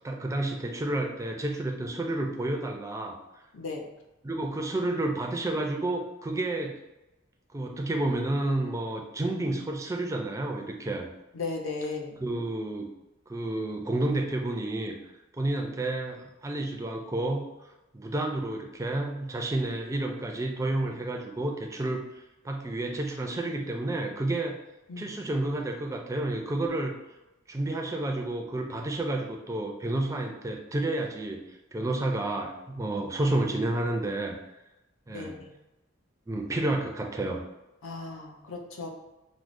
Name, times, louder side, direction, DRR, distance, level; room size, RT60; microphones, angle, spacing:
voice 1, 0.0-3.2 4.2-6.7 7.5-11.1 12.2-12.9 13.3-14.9 15.4-17.4 17.9-22.0 22.4-24.6 25.0-26.9 27.5-34.4 35.1-35.4 36.3-37.4, right 2 dB, 15° right, 2 dB, 0.3 m, -30 dB
voice 2, 11.3-12.2 24.9-25.1 35.1-35.3 37.8-38.9, left 3 dB, 75° left, 0 dB, 0.6 m, -35 dB
4.6 x 2.0 x 2.5 m, 0.99 s
head